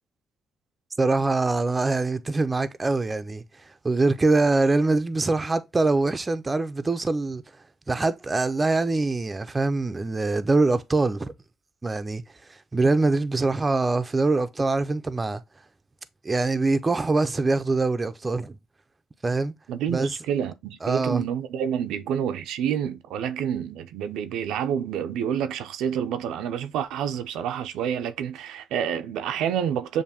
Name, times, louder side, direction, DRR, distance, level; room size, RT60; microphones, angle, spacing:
voice 1, 1.0-3.4 3.8-7.4 7.9-11.3 11.8-12.2 12.7-15.4 16.2-18.6 19.2-19.5 19.9-20.1 20.8-21.2, right 3 dB, 25° right, 0.5 m, -23 dB
voice 2, 19.7-30.0, right 8 dB, 90° right, 0.5 m, -28 dB
6.9 x 2.6 x 2.8 m
cardioid pair, 90°, 0 cm